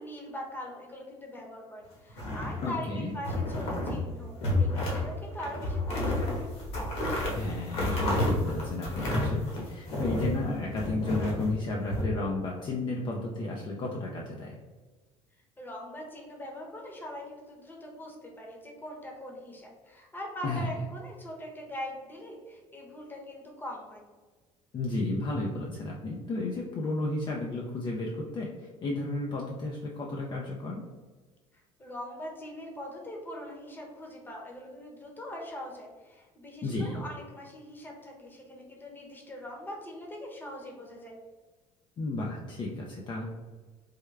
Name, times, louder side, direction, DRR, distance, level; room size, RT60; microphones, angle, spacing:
voice 1, 0.0-6.5 15.6-24.0 31.8-41.1, left 1 dB, 15° left, -1 dB, 0.9 m, -42 dB
sound 1, 2.1-2.8 3.2-4.0 4.4-5.1 5.4-10.4 10.8-12.0, left 1 dB, 60° left, 1.2 m, -30 dB
voice 2, 2.6-3.2 7.3-14.6 20.4-20.7 24.7-30.8 36.6-37.0 42.0-43.3, left 2 dB, 40° left, -1 dB, 0.5 m, -33 dB
3.5 x 2.1 x 3.2 m, 1.3 s
cardioid pair, 105°, 12 cm